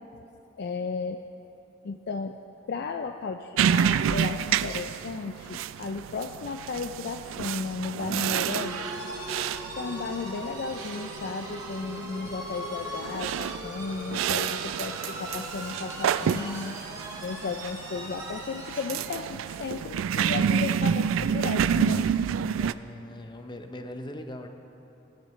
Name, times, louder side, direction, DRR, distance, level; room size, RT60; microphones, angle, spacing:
voice 1, 0.6-1.2 1.8-2.4 2.7-8.8 9.8-16.8 17.2-22.1, left 4 dB, 55° left, 6 dB, 0.4 m, -34 dB
sound 1, 3.6-22.7, right 8 dB, 80° right, 0.3 m, -29 dB
sound 2, 8.5-19.2, equal, 20° right, 1.8 m, -40 dB
voice 2, 22.6-24.5, left 1 dB, 25° left, 6 dB, 0.7 m, -40 dB
19.0 x 10.5 x 3.1 m, 2.9 s
head